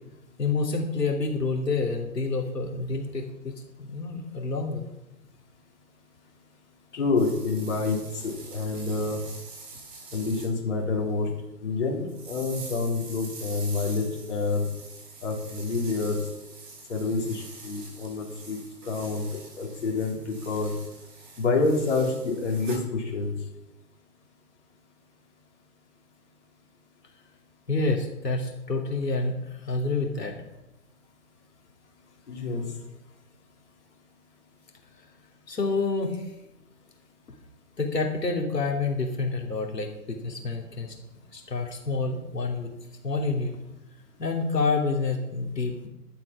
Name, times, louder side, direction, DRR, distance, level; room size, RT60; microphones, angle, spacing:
voice 1, 0.4-4.9 27.7-30.3 35.5-36.2 37.8-40.9 41.3-42.7 43.0-43.6 44.2-45.9, left 3 dB, 80° left, 1 dB, 3.1 m, -28 dB
voice 2, 6.9-8.0 8.2-9.2 10.1-11.3 11.6-14.6 15.2-16.2 16.9-18.6 18.8-19.2 19.6-20.7 21.4-23.3 32.3-32.6, left 3 dB, 45° left, -1 dB, 3.6 m, -27 dB
sound 1, 7.2-10.5 12.1-22.8, right 3 dB, 30° right, 4.9 m, -45 dB
12.0 x 8.5 x 5.9 m, 0.96 s
hypercardioid pair, 165°, 48 cm